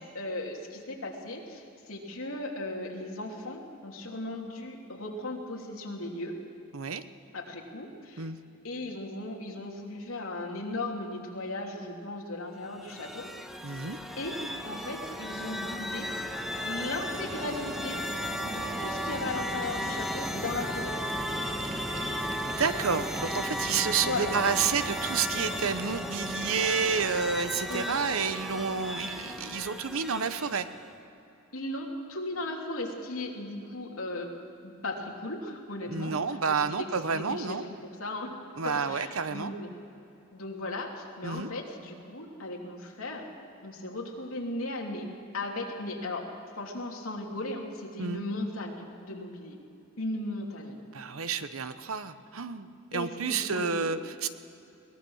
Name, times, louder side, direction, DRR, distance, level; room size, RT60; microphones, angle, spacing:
voice 1, 0.1-6.4 7.3-8.3 8.6-13.3 14.2-14.4 14.6-16.1 16.6-18.0 18.4-21.0 24.0-24.3 27.7-27.9 31.5-34.3 34.6-37.5 38.0-38.3 38.6-39.7 40.3-43.2 43.6-45.1 45.3-46.3 46.5-49.6 50.0-50.8 52.9-53.9, left 2 dB, 80° left, 0 dB, 3.0 m, -37 dB
sound 1, 12.7-30.9, equal, ahead, 1.3 m, -35 dB
voice 2, 13.6-14.0 22.4-30.7 35.9-37.6 38.6-39.5 41.2-41.5 48.0-48.2 50.9-54.3, right 5 dB, 75° right, 11 dB, 0.9 m, -30 dB
sound 2, 17.3-26.0, right 6 dB, 45° right, 0.6 m, -45 dB
22.0 x 19.0 x 6.4 m, 2.9 s
head